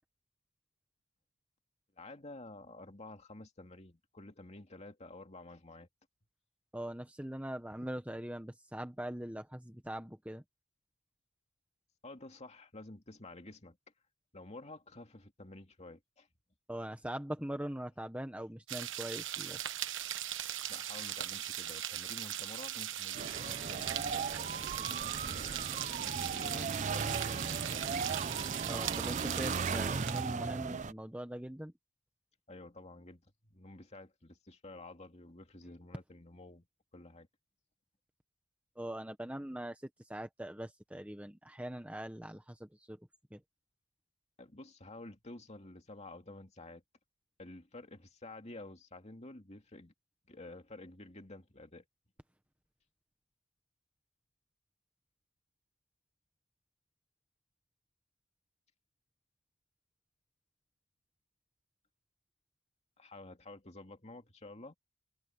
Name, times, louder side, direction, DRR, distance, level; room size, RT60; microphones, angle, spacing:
voice 1, 2.0-5.9 12.0-13.8 14.3-16.3 20.7-28.0 32.5-36.7 36.9-37.3 44.4-46.8 47.4-49.9 50.3-51.8 63.0-64.7, left 2 dB, 30° left, 2.4 m, -51 dB
voice 2, 6.7-10.4 16.7-19.7 28.7-31.7 38.7-43.0 43.3-43.4, right 1 dB, 5° right, 1.3 m, -42 dB
sound 1, 18.7-30.4, right 12 dB, 60° right, 1.2 m, -39 dB
sound 2, 23.1-30.9, right 5 dB, 35° right, 0.5 m, -37 dB
head